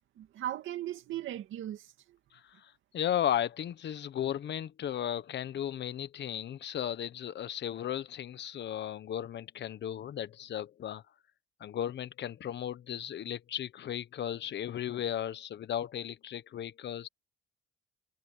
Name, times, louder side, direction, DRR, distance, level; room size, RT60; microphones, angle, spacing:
voice 1, 0.2-2.2, right 12 dB, 80° right, 2.3 m, -38 dB
voice 2, 2.3-11.0 11.6-17.1, left 10 dB, 60° left, 1.2 m, -35 dB
cardioid pair, 90°, 20 cm